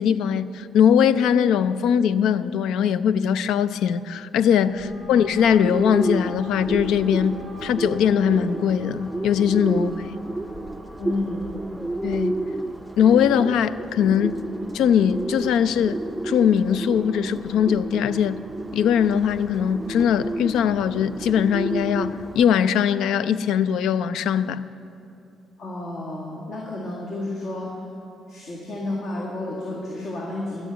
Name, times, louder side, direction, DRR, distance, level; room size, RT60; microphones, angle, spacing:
voice 1, 0.0-10.2 12.0-12.4 13.0-14.4 14.7-16.0 16.2-18.4 18.7-24.7, left 8 dB, 85° left, 0.4 m, -21 dB
sound 1, 4.6-22.5, left 1 dB, 45° left, 3.4 m, -48 dB
Bird, 5.4-22.4, right 2 dB, 10° right, 0.4 m, -31 dB
voice 2, 11.0-11.5 25.6-27.8 28.3-30.7, left 2 dB, 65° left, 2.0 m, -31 dB
13.0 x 6.5 x 7.9 m
cardioid pair, 90°, 0 cm